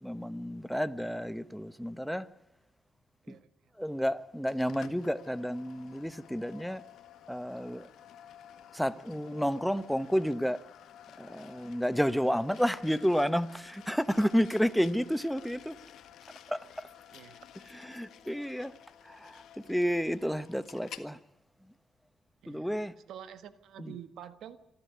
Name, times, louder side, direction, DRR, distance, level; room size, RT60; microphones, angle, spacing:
voice 1, 0.0-2.3 3.3-3.4 3.8-6.8 7.3-7.9 8.7-10.6 11.2-15.7 16.5-16.9 17.7-18.7 19.0-19.4 19.7-21.2 22.5-22.9 23.8-23.9, equal, ahead, 1.1 m, -31 dB
sound 1, 4.5-21.1, left 10 dB, 80° left, 1.6 m, -53 dB
voice 2, 17.1-17.4 22.4-22.7 23.1-24.6, right 10 dB, 80° right, 1.5 m, -47 dB
27.5 x 11.5 x 9.6 m
supercardioid pair, 65°, 0 cm